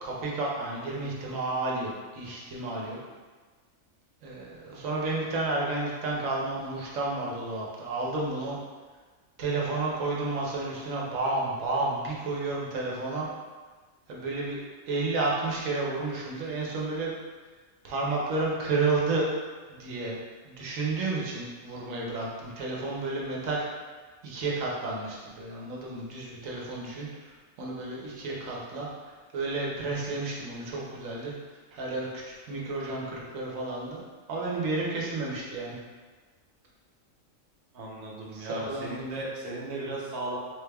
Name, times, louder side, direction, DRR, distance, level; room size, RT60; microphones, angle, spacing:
voice 1, 0.0-3.0 4.2-8.6 9.4-13.3 14.1-14.6 14.9-17.1 17.8-19.3 19.7-20.2 20.5-23.6 24.2-27.3 27.6-31.3 31.7-34.0 34.3-35.8 38.3-39.2, right 3 dB, 75° right, -4 dB, 1.2 m, -31 dB
voice 2, 37.7-40.4, right 2 dB, 50° right, -4 dB, 0.9 m, -36 dB
3.7 x 3.3 x 2.3 m, 1.4 s
omnidirectional pair, 1.4 m